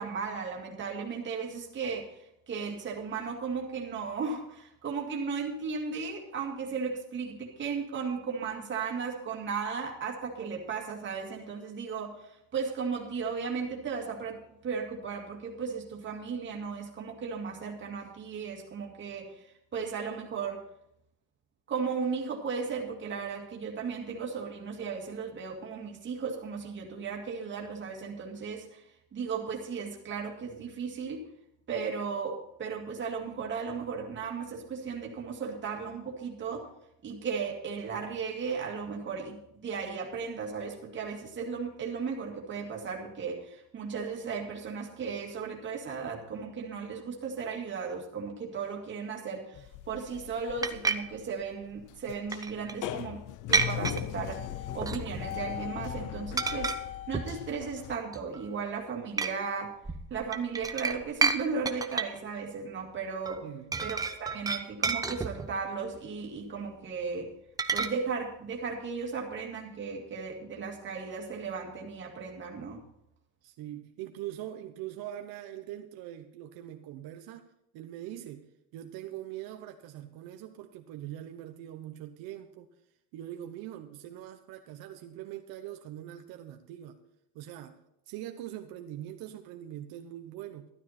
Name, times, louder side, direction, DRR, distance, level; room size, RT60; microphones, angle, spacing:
voice 1, 0.0-20.6 21.7-31.2 31.7-36.7 37.0-56.8 57.1-59.8 60.1-63.5 63.8-67.3 67.7-72.8, right 5 dB, 30° right, 0 dB, 2.1 m, -36 dB
sound 1, 49.5-58.0, left 12 dB, 60° left, 0.5 m, -39 dB
sound 2, 50.6-51.0 52.3-52.7 53.5-54.0 54.8-55.3 55.6-55.9 56.4-56.8 57.1-57.4 57.9-58.5 59.2-59.3 59.8-61.4 61.7-62.2 63.3-63.4 63.7-65.6 67.6-67.9, right 4 dB, 10° right, 0.4 m, -30 dB
voice 2, 63.4-63.8 73.4-77.4 77.7-78.5 78.7-82.7 83.1-87.0 87.3-87.8 88.1-90.7, right 12 dB, 80° right, 6 dB, 1.0 m, -42 dB
12.5 x 12.0 x 4.3 m, 0.79 s
cardioid pair, 165°, 36 cm